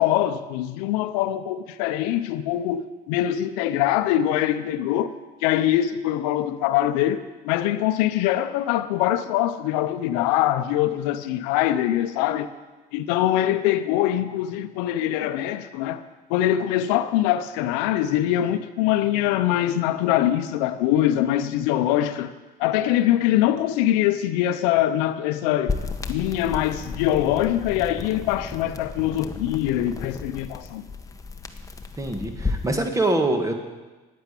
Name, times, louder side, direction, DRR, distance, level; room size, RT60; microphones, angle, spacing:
voice 1, 0.0-5.1 5.4-12.5 12.9-16.0 16.3-25.8 26.1-30.8, left 12 dB, 85° left, 0.6 m, -23 dB
sound 1, 25.7-32.7, left 4 dB, 15° left, 1.1 m, -33 dB
voice 2, 32.0-33.5, right 2 dB, 15° right, 1.8 m, -24 dB
9.5 x 9.4 x 8.3 m
supercardioid pair, 95°, 20 cm